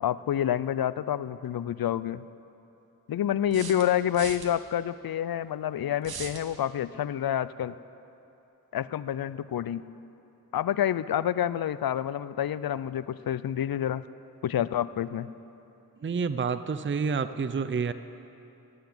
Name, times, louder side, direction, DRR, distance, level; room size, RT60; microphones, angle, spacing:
voice 1, 0.0-2.2 3.1-7.7 8.7-9.8 10.5-14.0 14.4-15.3, left 10 dB, 75° left, 16 dB, 0.5 m, -28 dB
sound 1, 1.4-1.5 3.5-4.5 6.0-6.5, right 5 dB, 90° right, 1.0 m, -39 dB
voice 2, 16.0-17.9, right 5 dB, 35° right, 12 dB, 0.5 m, -28 dB
17.0 x 8.1 x 7.9 m, 2.9 s
cardioid pair, 45°, 36 cm